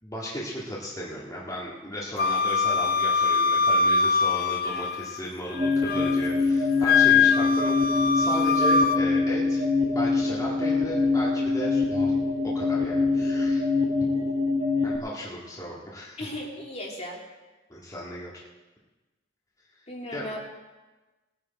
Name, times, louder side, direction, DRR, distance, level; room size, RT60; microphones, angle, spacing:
voice 1, 0.0-9.7 9.9-12.1 12.5-13.7 14.8-16.2 17.7-18.3 20.1-20.3, equal, 20° left, -6 dB, 2.0 m, -35 dB
Wind instrument woodwind instrument, 2.2-5.2 5.6-6.3 6.8-9.0, left 5 dB, 50° left, 0.5 m, -23 dB
sound 1, 5.5-15.0, left 3 dB, 30° right, 1.2 m, -24 dB
voice 2, 16.2-17.2 19.9-20.4, left 1 dB, 35° left, -1 dB, 2.5 m, -36 dB
20.0 x 9.8 x 4.4 m, 1.2 s
head